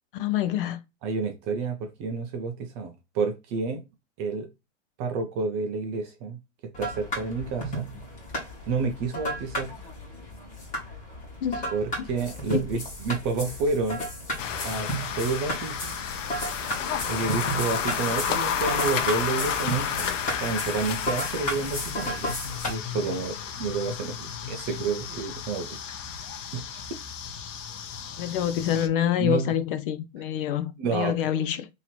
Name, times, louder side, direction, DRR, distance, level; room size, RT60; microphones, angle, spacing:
voice 1, 0.1-0.8 11.4-11.7 12.5-12.6 28.2-31.7, left 10 dB, 45° left, 0.5 m, -26 dB
voice 2, 1.0-3.8 4.2-4.5 5.0-6.4 6.8-7.9 8.7-9.7 11.7-14.0 14.6-14.9 15.1-15.9 17.1-20.1 20.4-22.3 22.7-25.8 26.5-26.8 29.2-29.5 30.8-31.1, right 4 dB, 25° right, 0.3 m, -30 dB
sound 1, 6.7-22.7, equal, 20° left, 1.6 m, -34 dB
sound 2, 14.4-28.9, left 7 dB, 80° left, 0.8 m, -32 dB
3.0 x 2.8 x 4.1 m
hypercardioid pair, 140°, 37 cm